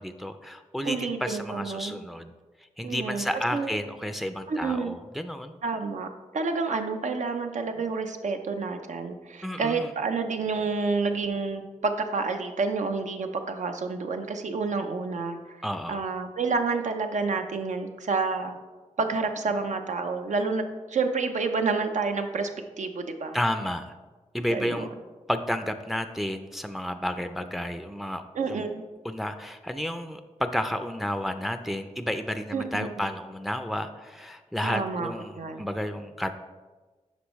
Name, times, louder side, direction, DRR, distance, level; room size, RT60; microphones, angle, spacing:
voice 1, 0.0-2.3 2.8-5.6 9.4-9.9 15.6-16.0 23.3-23.9 24.3-24.9 25.3-28.2 28.5-28.6 29.0-36.3, equal, ahead, 9 dB, 0.4 m, -31 dB
voice 2, 0.8-2.0 2.8-3.3 3.5-3.8 4.5-5.0 5.6-6.1 6.3-15.6 15.9-18.6 19.0-20.6 20.9-22.5 22.8-23.4 24.5-24.9 28.3-28.8 32.5-33.1 34.6-35.1 35.4-35.7, right 4 dB, 70° right, 6 dB, 0.6 m, -29 dB
8.2 x 5.4 x 3.1 m, 1.3 s
cardioid pair, 50°, 13 cm